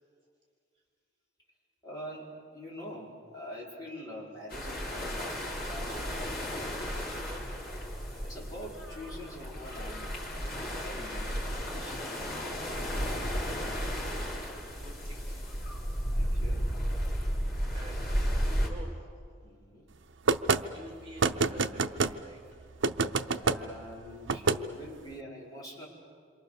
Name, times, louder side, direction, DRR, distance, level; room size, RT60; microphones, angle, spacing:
voice 1, 1.8-6.4 8.2-10.1 10.8-12.1 16.1-16.7 19.4-19.9 23.4-25.9, left 1 dB, 20° left, -5 dB, 5.3 m, -45 dB
sound 1, 4.5-18.7, equal, 50° left, 3.8 m, -33 dB
voice 2, 7.1-7.5 13.6-15.5 17.7-18.1 18.6-19.1 20.0-20.2 20.7-22.7, equal, 30° right, -1 dB, 3.5 m, -50 dB
sound 2, 20.3-20.6 21.2-22.1 22.8-23.6 24.3-24.6, right 4 dB, 85° right, 0.7 m, -26 dB
27.5 x 25.0 x 6.9 m, 2.1 s
head